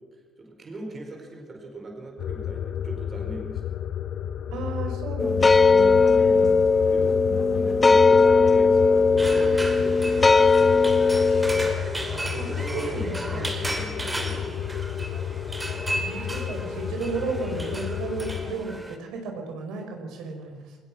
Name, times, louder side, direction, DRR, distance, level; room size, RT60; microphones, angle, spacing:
voice 1, 0.4-3.7 5.1-5.4 6.0-6.3 6.9-7.2 7.5-10.9 12.3-14.7, right 2 dB, 30° right, 2 dB, 4.8 m, -39 dB
sound 1, 2.2-18.6, left 9 dB, 50° left, 0.8 m, -32 dB
voice 2, 4.5-6.6 7.3-7.8 12.4-13.4 16.0-20.8, right 4 dB, 80° right, 3 dB, 5.1 m, -34 dB
sound 2, 5.2-11.7, left 4 dB, 15° left, 0.9 m, -18 dB
sound 3, 9.2-19.0, right 1 dB, 10° right, 2.4 m, -34 dB
22.0 x 20.5 x 6.2 m, 1.3 s
cardioid pair, 130°, 0 cm